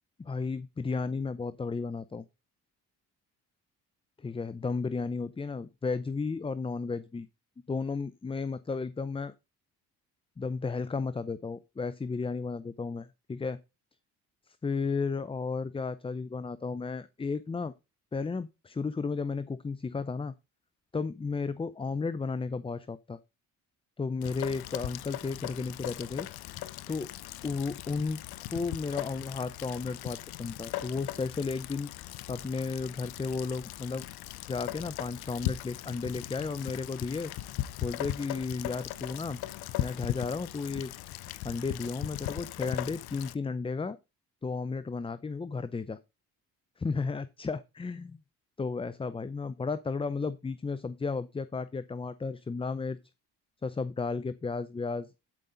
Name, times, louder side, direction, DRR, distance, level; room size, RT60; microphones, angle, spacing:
voice 1, 0.2-2.2 4.2-7.3 7.7-9.3 10.4-13.6 14.5-17.7 18.1-20.3 20.9-23.2 24.0-26.3 26.9-27.1 27.4-28.2 28.5-31.9 32.3-34.1 34.5-37.3 37.8-39.4 39.8-40.9 41.4-44.0 44.4-46.0 46.8-48.2 48.6-53.0 53.6-55.1, left 4 dB, 15° left, 0.5 m, -33 dB
Rain, 24.2-43.4, left 15 dB, 80° left, 0.8 m, -39 dB
12.0 x 5.3 x 3.9 m
supercardioid pair, 75°, 37 cm